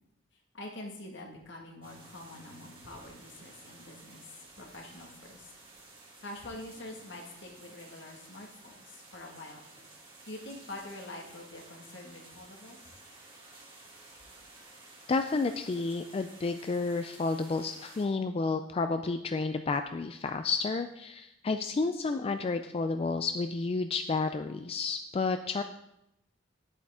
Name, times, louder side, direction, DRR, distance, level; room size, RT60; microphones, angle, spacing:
voice 1, 0.3-5.5 6.2-9.6 10.0-12.9, left 1 dB, 70° left, 1 dB, 1.7 m, -46 dB
sound 1, 1.8-18.1, right 2 dB, 30° right, 2.2 m, -53 dB
voice 2, 15.1-25.6, left 4 dB, 30° left, 8 dB, 0.3 m, -31 dB
10.5 x 8.2 x 3.6 m, 0.86 s
head